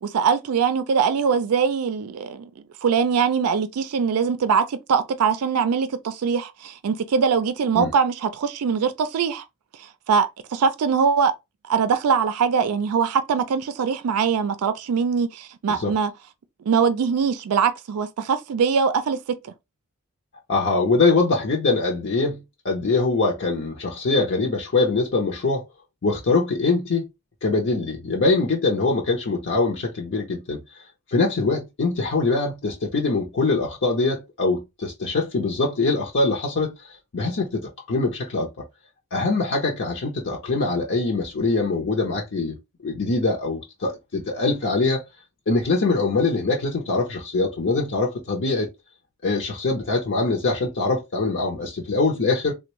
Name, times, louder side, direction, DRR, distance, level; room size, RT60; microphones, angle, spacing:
voice 1, 0.0-2.5 2.8-9.4 9.8-11.3 11.7-16.1 16.6-19.5, right 6 dB, 85° right, 0.4 m, -22 dB
voice 2, 20.5-25.6 26.0-27.1 27.4-30.6 31.1-36.7 37.1-38.5 39.1-42.6 42.8-45.0 45.5-48.7 49.2-52.5, left 3 dB, 60° left, 0.7 m, -23 dB
3.4 x 2.2 x 2.9 m
head